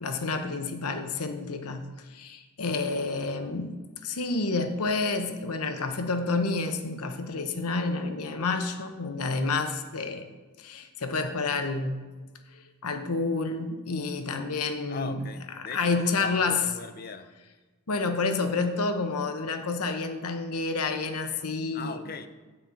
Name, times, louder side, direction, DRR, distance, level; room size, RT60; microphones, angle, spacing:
voice 1, 0.0-3.8 4.0-10.3 10.6-12.0 12.5-15.2 15.6-16.7 17.9-22.0, left 3 dB, 80° left, 7 dB, 0.9 m, -29 dB
voice 2, 14.9-17.3 21.7-22.3, left 4 dB, 40° left, 10 dB, 0.7 m, -39 dB
9.9 x 5.4 x 7.3 m, 1.3 s
head